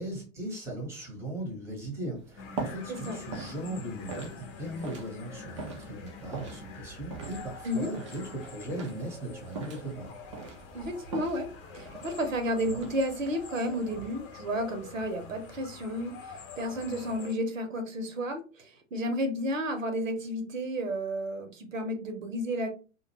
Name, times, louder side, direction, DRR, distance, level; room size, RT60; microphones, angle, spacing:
voice 1, 0.0-10.1, right 1 dB, 5° right, 1 dB, 0.8 m, -38 dB
sound 1, 2.2-16.2, right 4 dB, 25° right, 0.3 m, -44 dB
sound 2, 2.4-17.3, left 6 dB, 40° left, 0.7 m, -46 dB
voice 2, 10.7-22.7, equal, 70° right, 7 dB, 0.7 m, -32 dB
2.4 x 2.2 x 2.8 m, 0.34 s
figure-of-eight pair, 100°, 40 cm